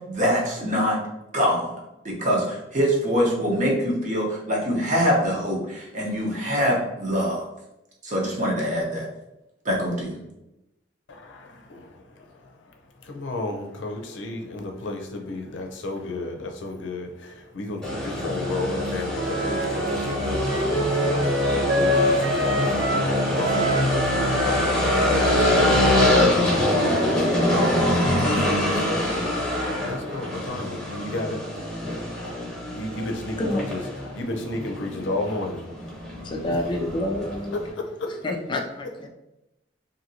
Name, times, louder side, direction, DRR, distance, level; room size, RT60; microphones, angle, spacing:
voice 1, 0.0-1.0 1.3-1.7 2.0-7.4 8.0-9.1 9.6-10.2, equal, 45° right, -3 dB, 0.8 m, -24 dB
voice 2, 11.1-12.0 13.1-36.3 37.7-38.2, left 2 dB, 90° left, 3 dB, 0.5 m, -34 dB
sound 1, 17.8-37.7, left 1 dB, 5° left, 1.0 m, -24 dB
Wind instrument woodwind instrument, 19.1-23.1 23.4-27.3, equal, 75° right, 0.5 m, -27 dB
voice 3, 36.2-37.6 38.2-39.1, left 1 dB, 25° left, 2 dB, 0.3 m, -28 dB
2.8 x 2.7 x 2.6 m, 0.92 s
head